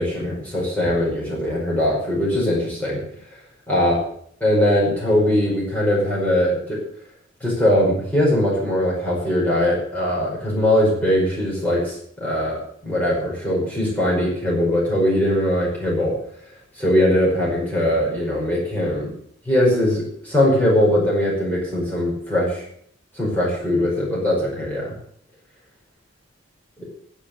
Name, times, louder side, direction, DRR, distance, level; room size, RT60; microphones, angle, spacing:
voice 1, 0.0-3.0 3.7-4.0 4.4-6.8 7.4-16.1 16.8-19.1 19.5-22.6 23.1-24.9 26.8-26.9, left 1 dB, 10° left, -5 dB, 5.2 m, -21 dB
10.5 x 9.9 x 7.8 m, 0.65 s
head